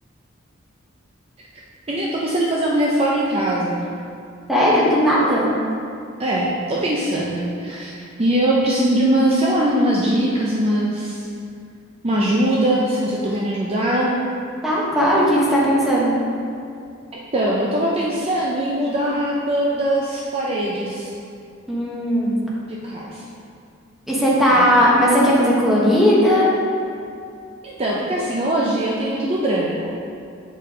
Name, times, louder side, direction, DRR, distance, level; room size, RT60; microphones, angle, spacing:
voice 1, 1.9-3.8 6.2-7.9 8.2-11.2 12.0-14.1 17.3-21.1 22.8-23.2 24.5-24.7 27.6-29.9, right 1 dB, 30° right, -5 dB, 0.6 m, -21 dB
voice 2, 4.5-5.5 14.6-16.2 21.7-22.3 24.1-26.5, equal, ahead, -7 dB, 1.3 m, -17 dB
8.2 x 4.4 x 3.7 m, 2.4 s
head